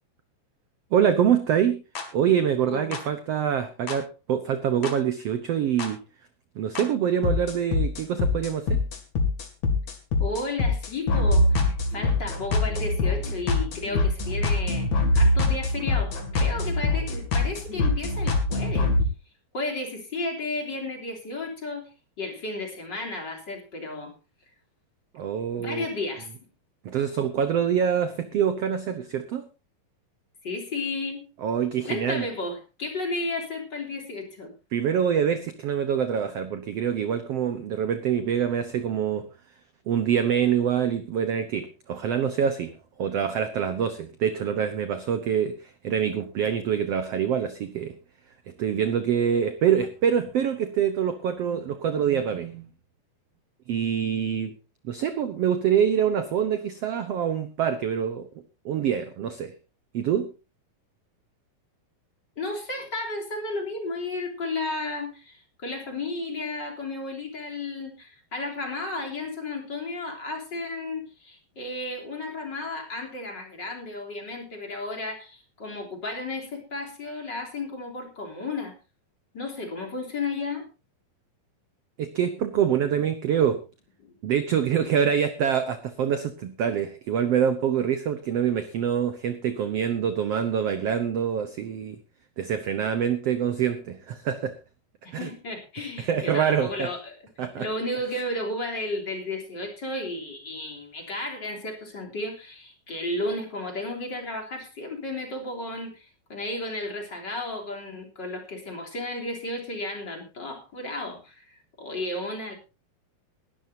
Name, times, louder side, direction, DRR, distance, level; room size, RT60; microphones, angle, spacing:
voice 1, 0.9-1.8 2.1-6.0 6.5-8.8 25.1-25.9 26.8-29.4 31.4-32.3 34.7-39.3 39.9-42.7 43.0-47.9 48.6-52.7 53.7-54.5 54.8-58.3 58.6-59.5 59.9-60.3 82.0-83.6 84.2-92.0 92.4-94.5 95.1-95.3 96.0-96.9 97.4-97.7, right 8 dB, 75° right, 10 dB, 1.4 m, -25 dB
sound 1, 2.0-2.1 2.9-3.0 3.9-4.0 4.8-4.9 5.8-5.9 6.8-6.9 7.2-19.0, left 2 dB, 50° left, 3.5 m, -24 dB
voice 2, 10.2-14.9 15.1-18.9 19.5-21.9 22.2-24.1 25.5-26.3 30.4-31.2 31.8-34.5 62.4-78.7 79.3-80.6 84.0-84.1 95.0-97.2 97.6-112.5, left 2 dB, 30° left, 1 dB, 3.7 m, -33 dB
20.5 x 12.5 x 2.8 m, 0.29 s
omnidirectional pair, 4.3 m